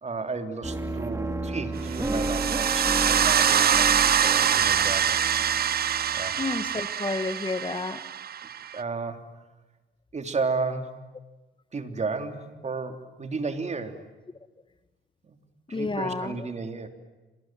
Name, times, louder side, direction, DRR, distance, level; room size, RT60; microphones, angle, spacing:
voice 1, 0.0-5.2 6.1-6.4 8.7-9.2 10.1-10.9 11.7-14.0 15.2-15.4 15.7-16.9, right 4 dB, 35° right, 3.4 m, -33 dB
sound 1, 0.6-6.7, right 2 dB, 15° right, 2.6 m, -32 dB
sound 2, 1.9-8.8, right 9 dB, 50° right, 0.9 m, -24 dB
voice 2, 6.4-8.0 15.7-16.3, left 3 dB, 25° left, 1.5 m, -30 dB
29.0 x 26.5 x 7.7 m
cardioid pair, 90°, 20 cm